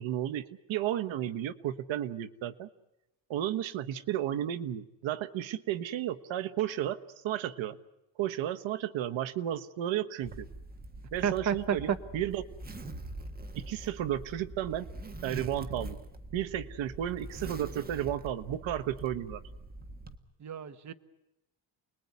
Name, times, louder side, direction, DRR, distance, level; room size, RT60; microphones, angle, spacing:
voice 1, 0.0-2.7 3.3-7.8 8.2-10.5 11.1-12.4 13.5-14.9 15.2-16.0 16.3-19.4, right 11 dB, 70° right, 11 dB, 1.3 m, -33 dB
Zipper (clothing), 10.2-20.2, right 2 dB, 20° right, 1.5 m, -44 dB
voice 2, 11.2-12.0 20.4-20.9, right 8 dB, 35° right, 11 dB, 1.2 m, -30 dB
29.5 x 21.0 x 9.6 m, 0.93 s
cardioid pair, 155°, 47 cm